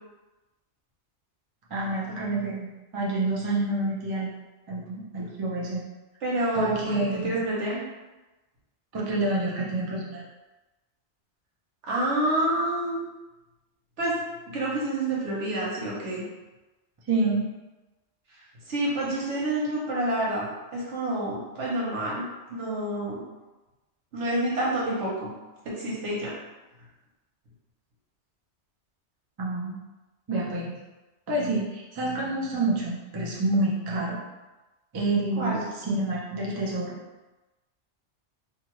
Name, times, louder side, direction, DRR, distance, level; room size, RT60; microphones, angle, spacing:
voice 1, 1.7-4.3 4.7-5.8 6.5-7.4 8.9-10.2 17.1-17.5 29.4-29.8 30.3-30.7 31.3-34.2 34.9-37.0, right 2 dB, 35° right, -5 dB, 0.3 m, -28 dB
voice 2, 6.2-7.8 11.8-13.1 14.0-14.1 14.5-16.2 18.7-23.2 24.1-25.3 25.7-26.3 35.4-35.6, right 1 dB, 80° right, -5 dB, 1.2 m, -28 dB
2.7 x 2.4 x 3.0 m, 1.1 s
omnidirectional pair, 1.2 m